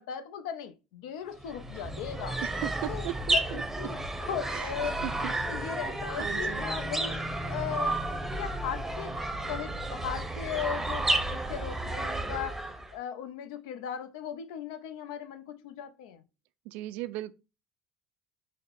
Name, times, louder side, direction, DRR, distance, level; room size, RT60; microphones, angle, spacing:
voice 1, 0.0-2.4 2.9-3.1 3.3-5.0 5.5-8.0 8.4-9.2 9.5-16.2, left 8 dB, 70° left, 0.5 m, -38 dB
sound 1, 1.4-12.9, right 1 dB, 10° right, 0.8 m, -32 dB
voice 2, 2.4-3.6 4.5-4.7 5.0-5.3 5.6-5.7 6.2-6.6 16.7-17.3, right 14 dB, 60° right, 0.3 m, -37 dB
5.5 x 2.1 x 3.5 m
figure-of-eight pair, 65°, 3 cm